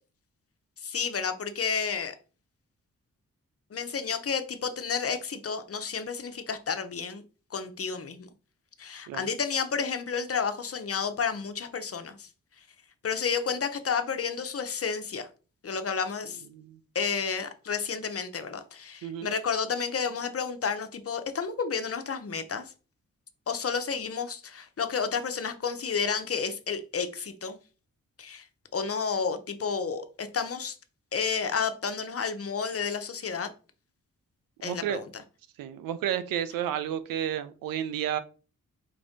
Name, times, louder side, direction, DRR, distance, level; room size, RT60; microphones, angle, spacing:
voice 1, 0.8-2.1 3.7-7.2 7.5-8.3 8.8-12.3 13.0-15.3 15.6-16.4 16.9-22.7 23.5-27.6 28.2-28.4 28.7-30.7 31.1-33.5 34.6-35.1, left 6 dB, 45° left, 0.7 m, -31 dB
voice 2, 34.6-35.0 35.6-38.2, right 10 dB, 90° right, 0.5 m, -31 dB
4.7 x 2.5 x 3.6 m
supercardioid pair, 45°, 33 cm